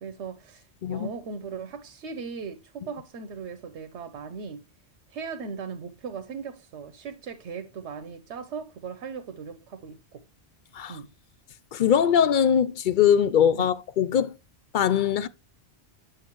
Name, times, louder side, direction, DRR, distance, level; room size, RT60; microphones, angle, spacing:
voice 1, 0.0-4.6 5.1-10.2 10.9-11.1 13.6-13.7, right 5 dB, 85° right, 1.0 m, -38 dB
voice 2, 11.7-14.3 14.7-15.3, left 8 dB, 55° left, 0.6 m, -22 dB
9.0 x 6.5 x 3.0 m
omnidirectional pair, 1.1 m